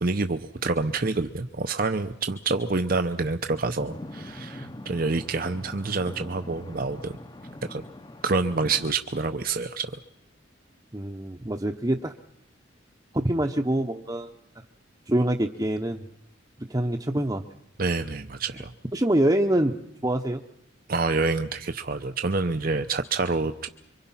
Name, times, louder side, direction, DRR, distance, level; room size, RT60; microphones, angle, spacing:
voice 1, 0.0-7.2 7.7-7.8 8.2-9.9 17.8-18.7 20.9-23.7, right 3 dB, 45° right, 8 dB, 0.8 m, -27 dB
sound 1, 3.8-8.9, left 1 dB, 20° left, 0.9 m, -42 dB
voice 2, 10.9-12.1 13.1-14.3 15.1-16.0 16.6-17.4 18.9-20.4, right 1 dB, 20° right, 3 dB, 0.9 m, -25 dB
26.0 x 24.5 x 5.7 m, 0.80 s
head